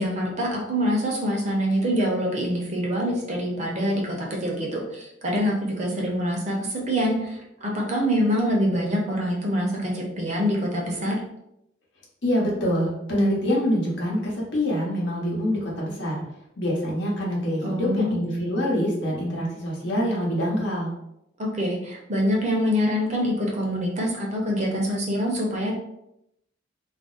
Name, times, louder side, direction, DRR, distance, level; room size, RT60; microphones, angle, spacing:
voice 1, 0.0-11.2 17.6-18.1 21.4-25.7, equal, 35° right, -1 dB, 0.6 m, -25 dB
voice 2, 12.2-16.2 16.6-20.9, equal, 65° left, -4 dB, 1.0 m, -25 dB
2.5 x 2.0 x 3.8 m, 0.81 s
head